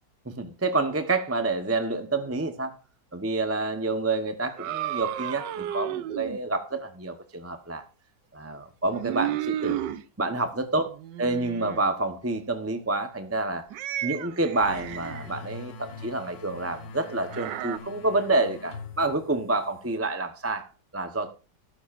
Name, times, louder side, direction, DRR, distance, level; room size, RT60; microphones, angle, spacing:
voice 1, 0.3-2.7 3.1-7.8 8.3-9.8 10.2-10.9 11.2-13.7 14.0-21.3, right 2 dB, 15° right, 7 dB, 0.5 m, -28 dB
sound 1, 4.5-6.4 8.9-10.0 10.9-11.8 13.7-15.3 17.3-17.8, right 12 dB, 80° right, 1.3 m, -32 dB
sound 2, 14.6-20.0, left 4 dB, 85° left, 1.8 m, -43 dB
13.0 x 12.5 x 2.5 m, 0.34 s
omnidirectional pair, 1.9 m